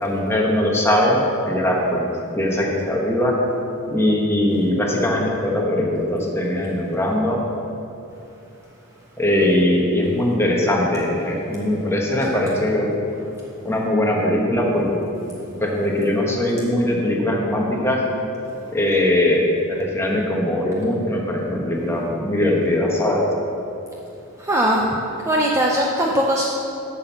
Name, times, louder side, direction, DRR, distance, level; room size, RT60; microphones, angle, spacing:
voice 1, 0.0-2.1 2.4-3.3 3.9-7.4 9.2-12.9 13.6-15.0 15.6-18.0 18.7-19.4 19.7-23.3, left 1 dB, 10° left, -2 dB, 1.2 m, -20 dB
voice 2, 24.4-24.9 25.3-26.5, equal, 15° right, -2 dB, 0.5 m, -19 dB
7.8 x 6.2 x 7.0 m, 2.8 s
head